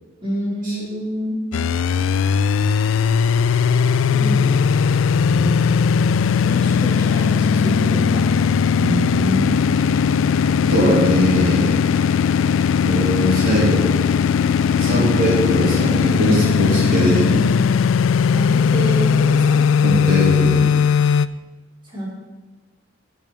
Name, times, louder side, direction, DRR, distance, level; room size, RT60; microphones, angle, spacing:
voice 1, 0.2-1.4 4.1-4.6 6.4-8.2 8.8-9.5 14.9-15.0 18.3-19.6 21.9-22.1, right 1 dB, 25° right, -7 dB, 4.4 m, -27 dB
sound 1, 1.5-21.3, left 6 dB, 75° left, 0.3 m, -18 dB
voice 2, 5.3-5.6 10.7-11.7 12.8-13.8 14.8-17.5 19.8-20.6, equal, 45° right, -6 dB, 3.4 m, -20 dB
15.5 x 5.5 x 5.9 m, 1.2 s
head